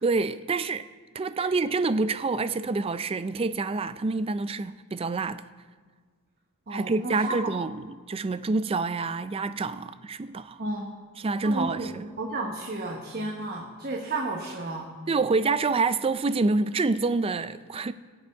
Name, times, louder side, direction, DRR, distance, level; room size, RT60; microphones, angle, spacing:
voice 1, 0.0-0.9 1.1-5.4 6.7-10.6 11.2-12.0 15.1-17.9, right 3 dB, 25° right, 0.4 m, -27 dB
voice 2, 6.7-7.5 10.6-11.0 11.4-14.9, right 2 dB, 45° right, 1.1 m, -33 dB
21.5 x 7.9 x 3.5 m
head